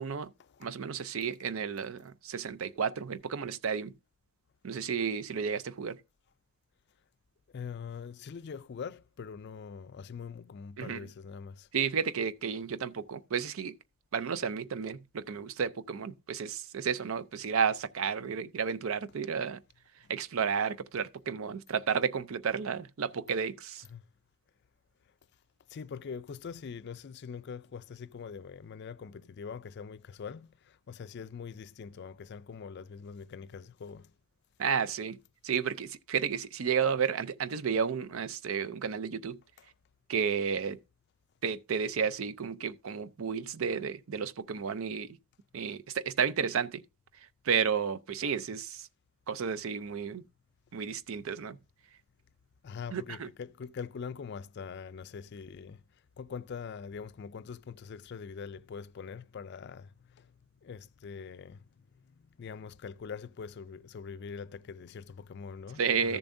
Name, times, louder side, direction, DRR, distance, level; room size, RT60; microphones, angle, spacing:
voice 1, 0.0-0.3 0.6-3.9 4.6-6.0 10.8-11.1 11.7-13.8 14.1-19.6 20.1-23.8 34.6-35.2 35.4-39.4 40.1-40.8 41.4-45.2 45.5-46.8 47.4-48.9 49.3-50.2 50.7-51.6 52.9-53.3 65.8-66.2, right 6 dB, 65° right, 0.5 m, -32 dB
voice 2, 7.5-11.7 23.9-24.0 25.7-34.1 52.6-55.8 56.2-60.3 60.6-61.7 62.1-66.2, left 6 dB, 50° left, 0.4 m, -43 dB
13.5 x 7.0 x 2.6 m
head